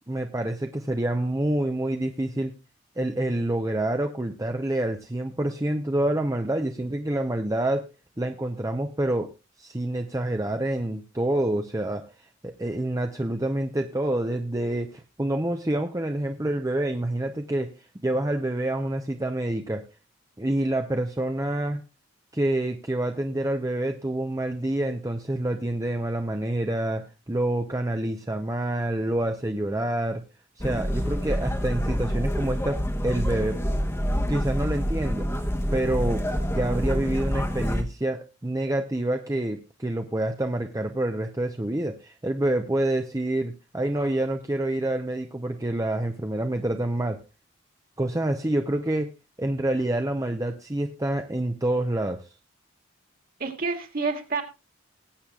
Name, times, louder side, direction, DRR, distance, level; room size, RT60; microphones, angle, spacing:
voice 1, 0.1-2.5 3.0-7.8 8.2-9.3 9.6-12.0 12.4-17.7 18.0-19.8 20.4-21.8 22.3-30.2 30.6-33.6 34.3-35.3 35.7-47.2 48.0-49.1 49.4-52.2, right 1 dB, 15° right, 4 dB, 0.7 m, -27 dB
sound 1, 30.6-37.8, equal, 15° left, 1.0 m, -27 dB
voice 2, 53.4-54.4, right 4 dB, 45° right, 4 dB, 2.1 m, -28 dB
20.0 x 8.4 x 2.4 m, 0.29 s
head